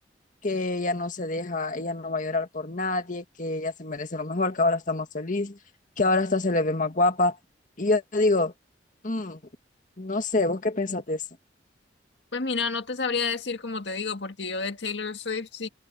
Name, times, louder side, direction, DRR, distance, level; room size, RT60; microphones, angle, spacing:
voice 1, 0.4-5.6 6.0-7.4 7.8-8.5 9.0-9.4 10.0-11.2, left 2 dB, 45° left, 1.9 m, -26 dB
voice 2, 12.3-15.7, left 4 dB, 75° left, 1.8 m, -30 dB
head